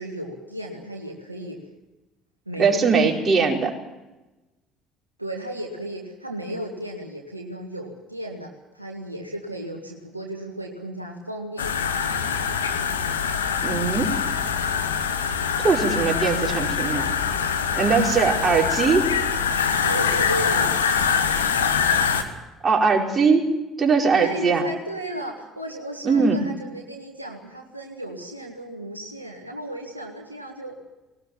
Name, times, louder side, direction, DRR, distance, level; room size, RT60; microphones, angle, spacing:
voice 1, 0.0-1.6 2.4-3.2 5.2-12.4 16.4-16.6 19.8-20.8 24.2-30.8, right 1 dB, 90° right, 1 dB, 1.8 m, -34 dB
voice 2, 2.6-3.7 13.6-14.1 15.6-17.1 17.7-19.1 22.6-23.4 23.8-24.6 26.0-26.4, right 5 dB, 30° right, -1 dB, 4.8 m, -20 dB
sound 1, 11.6-22.2, left 6 dB, 80° left, 1.5 m, -24 dB
20.0 x 18.5 x 7.3 m, 1.1 s
figure-of-eight pair, 55°, 0 cm